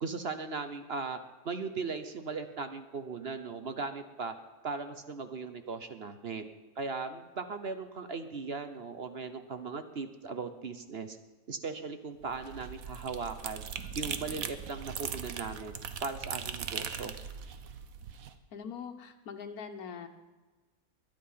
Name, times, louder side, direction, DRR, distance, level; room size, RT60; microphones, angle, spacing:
voice 1, 0.0-1.2 1.4-4.3 4.6-6.4 6.8-11.2 11.5-13.6 14.0-15.7 16.0-17.2, right 4 dB, 45° right, 9 dB, 1.0 m, -38 dB
sound 1, 12.2-18.3, right 7 dB, 70° right, 1.4 m, -40 dB
voice 2, 18.5-20.1, left 6 dB, 80° left, 6 dB, 1.6 m, -42 dB
21.5 x 10.5 x 5.7 m, 1.3 s
omnidirectional pair, 1.6 m